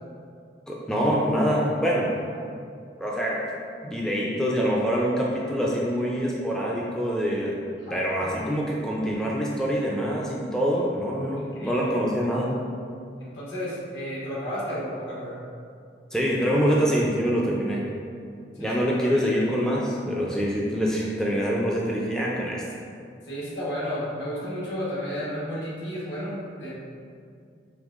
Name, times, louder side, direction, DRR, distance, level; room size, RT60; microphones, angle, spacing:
voice 1, 0.7-2.1 3.0-3.5 3.8-7.6 7.9-12.5 16.1-17.9 18.6-22.6, equal, 5° left, -4 dB, 0.3 m, -25 dB
voice 2, 7.8-8.5 10.7-10.8 11.3-12.0 13.2-15.4 18.6-18.7 19.0-19.4 23.3-26.7, equal, 75° left, -7 dB, 1.3 m, -33 dB
5.4 x 3.2 x 2.4 m, 2.3 s
head